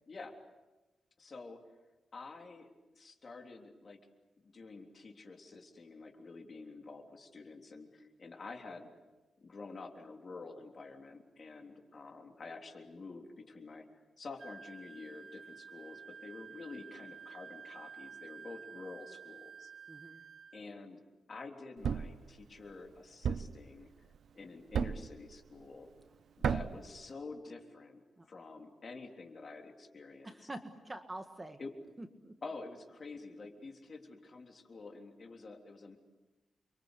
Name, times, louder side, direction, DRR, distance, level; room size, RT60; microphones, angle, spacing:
voice 1, 0.1-0.4 1.2-1.6 2.1-2.7 3.0-4.0 4.4-8.9 9.4-13.9 14.2-19.7 20.5-21.0 21.3-23.9 24.3-25.9 26.4-30.5 31.6-31.8 32.4-36.0, left 3 dB, 40° left, 3 dB, 3.4 m, -48 dB
Wind instrument woodwind instrument, 14.4-20.6, right 6 dB, 40° right, 1.2 m, -51 dB
voice 2, 19.9-20.2 26.5-26.6 28.2-28.3 30.2-31.6 32.0-32.3, right 1 dB, 15° right, 6 dB, 1.6 m, -46 dB
Thump thud, 21.8-22.2 23.2-23.6 24.7-25.1 26.4-26.8, right 7 dB, 70° right, 0.8 m, -32 dB
29.5 x 24.0 x 8.2 m, 1.1 s
wide cardioid pair, 150°, 0 cm